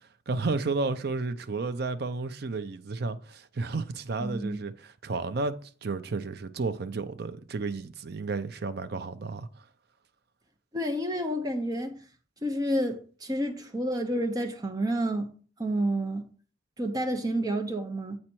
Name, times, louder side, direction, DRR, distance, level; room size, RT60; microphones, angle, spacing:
voice 1, 0.3-9.5, right 3 dB, 60° right, 0.6 m, -32 dB
voice 2, 4.2-4.6 10.7-12.0 12.4-15.2 15.6-16.2 16.8-18.2, right 1 dB, 20° right, 1.0 m, -29 dB
8.7 x 4.2 x 4.5 m
head